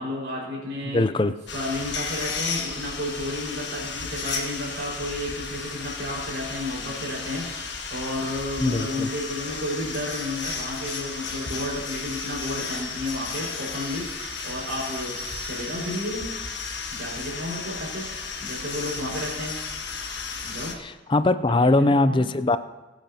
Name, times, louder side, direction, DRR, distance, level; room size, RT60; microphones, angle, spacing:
voice 1, 0.0-1.0 1.5-7.5 7.9-14.1 14.4-16.3 16.9-18.1 18.4-19.6 20.4-20.8 21.5-22.4, left 1 dB, 80° right, -3 dB, 5.0 m, -32 dB
voice 2, 0.9-1.3 8.6-9.1 20.8-22.6, left 2 dB, 25° left, 12 dB, 0.4 m, -21 dB
sound 1, 1.5-20.7, left 4 dB, 70° left, 1.3 m, -33 dB
22.0 x 9.0 x 2.8 m, 1.2 s
head